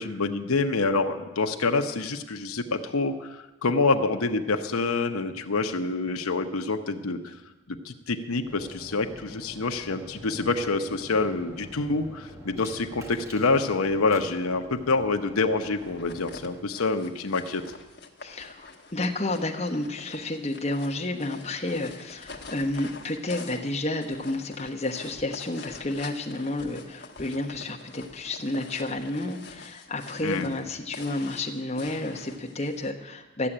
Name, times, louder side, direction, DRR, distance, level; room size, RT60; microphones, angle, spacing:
voice 1, 0.0-7.4 7.7-17.6 30.2-30.5, left 3 dB, 90° left, 6 dB, 0.9 m, -27 dB
sound 1, 8.5-16.6, equal, 15° right, 1.2 m, -45 dB
sound 2, 15.8-32.9, left 3 dB, 50° left, 1.2 m, -46 dB
voice 2, 18.2-33.5, left 2 dB, 30° left, 1 dB, 1.2 m, -31 dB
13.5 x 7.7 x 9.9 m, 1.1 s
head